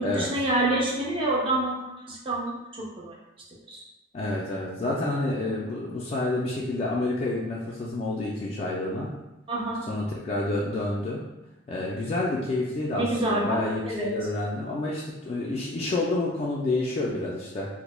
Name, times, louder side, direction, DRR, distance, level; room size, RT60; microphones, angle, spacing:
voice 1, 0.0-3.2 3.7-3.8 9.5-9.8 12.9-14.1, right 1 dB, 30° right, -3 dB, 0.5 m, -27 dB
voice 2, 4.1-9.1 9.9-11.2 11.7-17.7, left 2 dB, 35° left, -5 dB, 0.3 m, -29 dB
3.1 x 2.0 x 2.2 m, 0.96 s
head